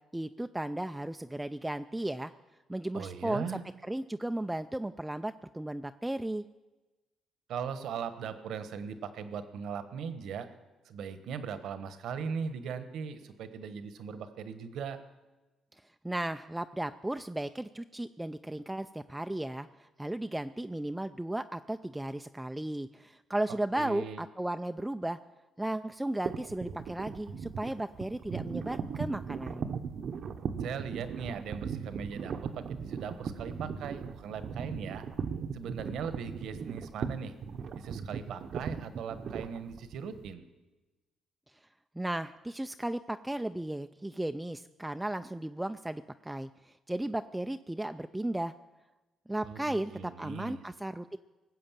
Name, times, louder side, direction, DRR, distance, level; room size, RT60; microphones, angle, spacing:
voice 1, 0.1-2.3 2.7-3.6 3.9-6.4 16.0-25.2 25.6-29.7 42.0-48.5 49.3-51.2, right 1 dB, 10° right, 9 dB, 0.4 m, -35 dB
voice 2, 2.9-3.6 7.5-10.5 10.8-15.0 23.7-24.2 30.6-35.0 35.5-37.3 37.8-40.5 49.4-50.6, right 6 dB, 80° right, 11 dB, 1.2 m, -39 dB
sound 1, 26.2-40.3, right 6 dB, 60° right, 0.8 m, -38 dB
19.0 x 7.7 x 7.4 m, 1.1 s
cardioid pair, 90°, 0 cm